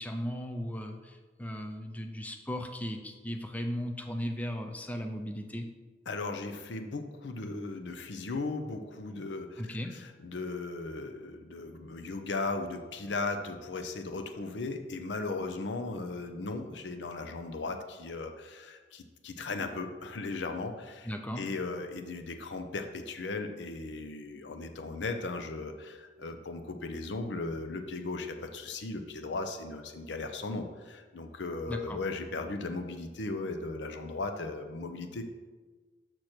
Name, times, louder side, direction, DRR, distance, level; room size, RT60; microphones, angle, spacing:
voice 1, 0.0-5.7 9.6-9.9 21.1-21.4 31.7-32.0, equal, 10° left, 4 dB, 0.5 m, -36 dB
voice 2, 6.1-21.1 21.4-35.2, left 3 dB, 80° left, 6 dB, 0.7 m, -37 dB
6.5 x 6.0 x 4.4 m, 1.4 s
head